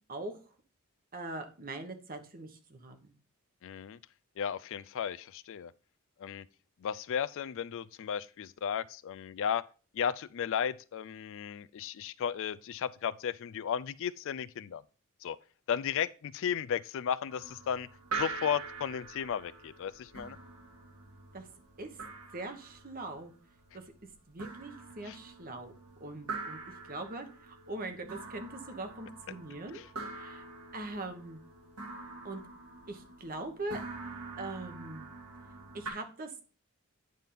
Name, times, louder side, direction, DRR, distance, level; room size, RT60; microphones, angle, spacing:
voice 1, 1.1-3.1 21.3-21.5 21.8-21.9 22.3-23.3 23.7-23.9 24.3-25.7 26.0-26.6 26.9-29.9 30.1-30.4 30.7-31.4 32.2-32.4 32.9-33.8 34.4-35.1 35.7-36.3, right 2 dB, 40° right, 1.2 m, -41 dB
voice 2, 3.6-4.0 4.4-5.7 6.2-6.5 6.8-9.6 9.9-14.8 15.2-15.4 15.7-17.9 18.1-20.4 25.1-25.2, left 8 dB, 65° left, 0.4 m, -34 dB
sound 1, 17.3-35.9, right 4 dB, 80° right, 2.9 m, -44 dB
9.2 x 3.5 x 5.8 m
head